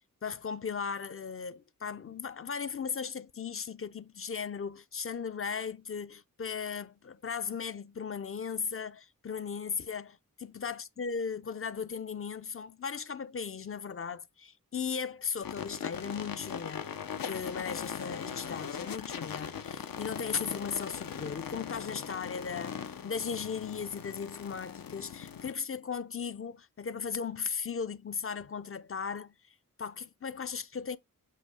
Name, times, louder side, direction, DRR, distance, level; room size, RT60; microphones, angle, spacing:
voice 1, 0.2-16.9 17.2-22.8 23.0-31.0, left 6 dB, 40° left, 0.5 m, -37 dB
sound 1, 15.4-25.5, left 7 dB, 75° left, 0.8 m, -40 dB
7.7 x 2.8 x 4.9 m
wide cardioid pair, 85°, 34 cm